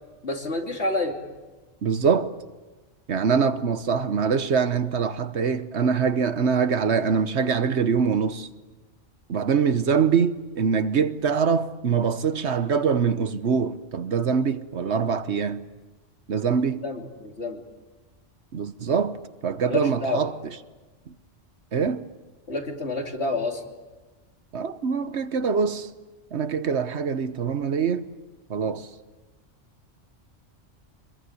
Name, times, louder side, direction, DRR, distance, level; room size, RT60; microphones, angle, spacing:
voice 1, 0.2-1.2 16.8-17.6 19.7-20.3 22.5-23.6, left 2 dB, 65° left, 3.2 m, -28 dB
voice 2, 1.8-2.3 3.1-8.5 9.3-15.6 16.3-16.8 18.5-20.6 21.7-22.0 24.5-25.9 26.3-28.1 28.5-28.9, right 6 dB, 65° right, 1.3 m, -24 dB
25.5 x 21.5 x 9.6 m
omnidirectional pair, 1.2 m